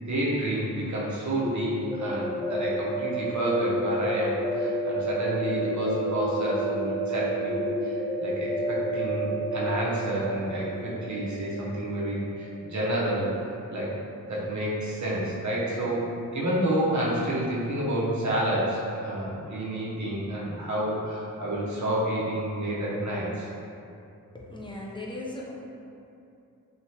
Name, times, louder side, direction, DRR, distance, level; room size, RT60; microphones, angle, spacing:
voice 1, 0.0-7.6 7.8-13.3 13.7-13.9 14.3-16.1 16.3-23.5, right 1 dB, 60° right, -6 dB, 0.8 m, -29 dB
sound 1, 1.4-13.1, right 1 dB, 10° right, 1.0 m, -30 dB
voice 2, 24.3-25.5, left 1 dB, 15° left, -3 dB, 0.5 m, -37 dB
3.2 x 2.4 x 2.7 m, 2.6 s
wide cardioid pair, 60°, 33 cm